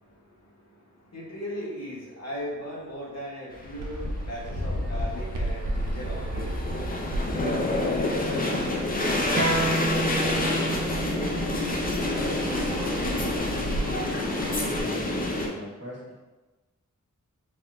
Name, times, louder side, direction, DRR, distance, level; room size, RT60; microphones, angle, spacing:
voice 1, 0.0-6.8 7.3-11.9, equal, 55° left, -6 dB, 0.9 m, -39 dB
sound 1, 3.6-15.5, left 2 dB, 30° left, 0.4 m, -28 dB
Fixed-wing aircraft airplane, 3.8-14.8, right 2 dB, 85° right, 0.5 m, -35 dB
sound 2, 9.4-14.5, right 2 dB, 25° right, 0.6 m, -32 dB
voice 2, 14.6-16.2, equal, 50° right, -8 dB, 1.3 m, -43 dB
3.5 x 2.1 x 2.4 m, 1.2 s
wide cardioid pair, 65°, 31 cm